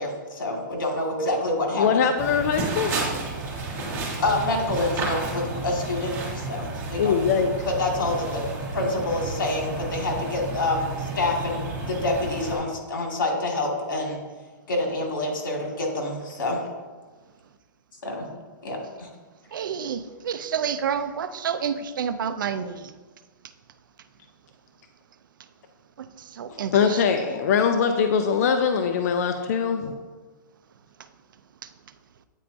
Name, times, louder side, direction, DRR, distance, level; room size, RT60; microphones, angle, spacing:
voice 1, 0.0-2.4 4.2-8.4 8.7-14.2 14.7-16.6 18.0-18.3 18.6-19.1, left 2 dB, 90° left, 0 dB, 2.0 m, -27 dB
voice 2, 1.7-2.9 7.0-7.5 26.7-30.0, left 6 dB, 50° left, 6 dB, 0.5 m, -22 dB
sound 1, 2.2-12.6, right 3 dB, 20° right, 1.7 m, -31 dB
voice 3, 19.5-22.9 26.3-27.3, right 7 dB, 75° right, 11 dB, 0.5 m, -29 dB
9.0 x 4.4 x 2.6 m, 1.3 s
hypercardioid pair, 160°, 11 cm